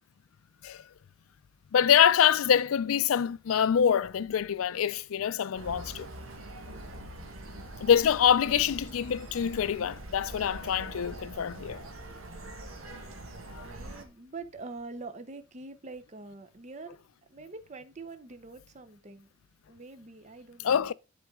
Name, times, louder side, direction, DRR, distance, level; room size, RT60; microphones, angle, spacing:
voice 1, 1.7-6.1 7.8-11.8 13.5-13.7 20.6-20.9, left 8 dB, 90° left, 0.4 m, -25 dB
sound 1, 5.5-14.0, right 1 dB, 90° right, 1.3 m, -43 dB
voice 2, 6.6-7.1 12.8-13.2 13.6-17.0 17.3-19.3 19.7-20.9, right 3 dB, 35° right, 0.6 m, -45 dB
11.0 x 3.9 x 3.6 m
head